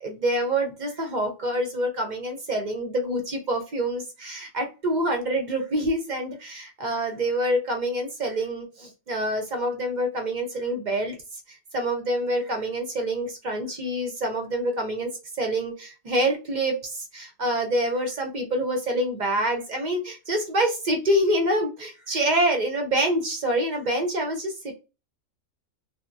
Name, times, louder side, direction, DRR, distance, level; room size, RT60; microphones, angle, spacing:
voice 1, 0.0-15.1 15.4-24.7, right 1 dB, 50° right, 3 dB, 0.6 m, -26 dB
2.9 x 2.1 x 2.5 m, 0.30 s
omnidirectional pair, 1.4 m